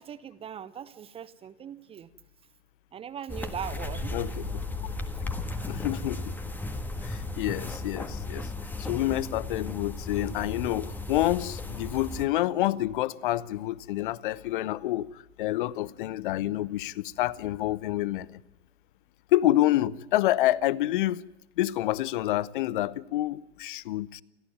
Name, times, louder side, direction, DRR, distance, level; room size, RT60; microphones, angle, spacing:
voice 1, 0.0-2.1 2.9-4.2, right 8 dB, 15° right, 0.9 m, -40 dB
sound 1, 3.3-12.2, left 2 dB, 5° left, 1.7 m, -35 dB
voice 2, 5.7-6.4 7.0-8.5 8.8-18.4 19.3-21.3 21.6-24.2, left 15 dB, 45° left, 0.9 m, -28 dB
29.0 x 14.0 x 9.5 m
figure-of-eight pair, 105°, 34 cm